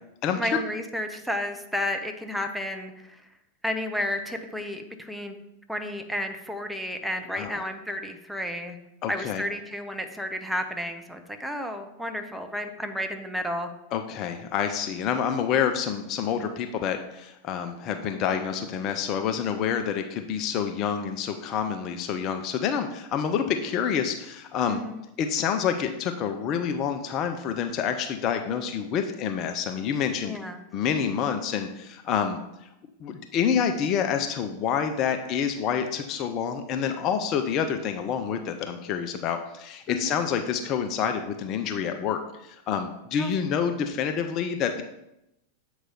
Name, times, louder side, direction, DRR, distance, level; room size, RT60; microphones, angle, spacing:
voice 1, 0.3-3.2 3.6-5.4 5.7-8.8 9.1-13.7 24.7-25.0 30.2-30.6 39.9-40.1 43.1-43.3, left 1 dB, ahead, 4 dB, 0.7 m, -32 dB
voice 2, 9.0-9.4 13.9-24.8 25.2-30.4 30.7-32.7 33.0-44.8, left 7 dB, 35° left, 6 dB, 0.5 m, -28 dB
7.7 x 4.7 x 3.9 m, 0.86 s
figure-of-eight pair, 90°, 0 cm